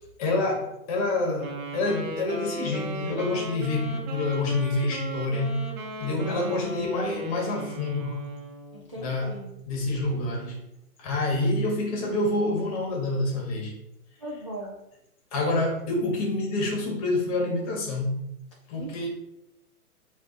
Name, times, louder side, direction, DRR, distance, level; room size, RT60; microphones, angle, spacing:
voice 1, 0.2-5.6 6.0-8.2 9.0-9.3 9.7-10.6 11.0-13.7 15.3-18.2 18.7-19.1, left 2 dB, 25° left, 1 dB, 1.0 m, -27 dB
Wind instrument woodwind instrument, 1.4-8.8, right 2 dB, 60° right, 1.2 m, -37 dB
voice 2, 6.2-6.7 8.7-9.5 14.2-14.8 18.7-19.1, right 1 dB, 25° right, -7 dB, 0.3 m, -39 dB
4.9 x 2.5 x 3.8 m, 0.85 s
hypercardioid pair, 150°, 44 cm